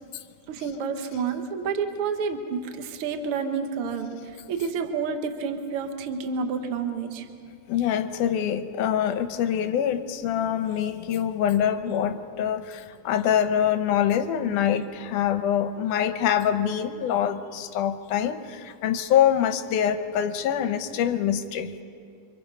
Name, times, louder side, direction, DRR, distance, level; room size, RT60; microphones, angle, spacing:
voice 1, 0.5-4.2 4.5-7.3, right 5 dB, 55° right, 6 dB, 1.6 m, -29 dB
voice 2, 7.7-21.7, left 9 dB, 75° left, 8 dB, 2.0 m, -25 dB
29.0 x 25.0 x 5.5 m, 2.3 s
omnidirectional pair, 4.4 m